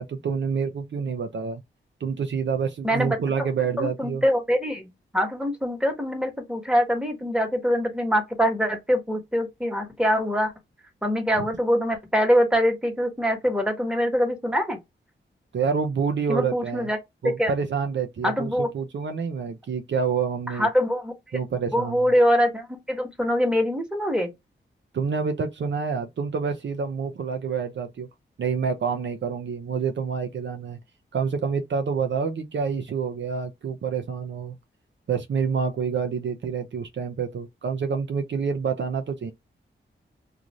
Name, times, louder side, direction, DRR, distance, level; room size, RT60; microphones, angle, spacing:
voice 1, 0.0-1.6 2.0-4.2 11.4-11.5 15.5-16.9 17.2-20.7 21.3-22.1 24.9-28.1 28.4-30.8 31.1-34.6 35.1-39.3, right 6 dB, 65° right, 0.5 m, -27 dB
voice 2, 2.8-3.5 3.8-10.5 11.0-14.8 16.3-17.0 17.4-17.5 18.2-18.7 20.5-21.1 21.7-24.3, equal, 5° right, 1.3 m, -24 dB
2.6 x 2.4 x 3.0 m
cardioid pair, 55°, 21 cm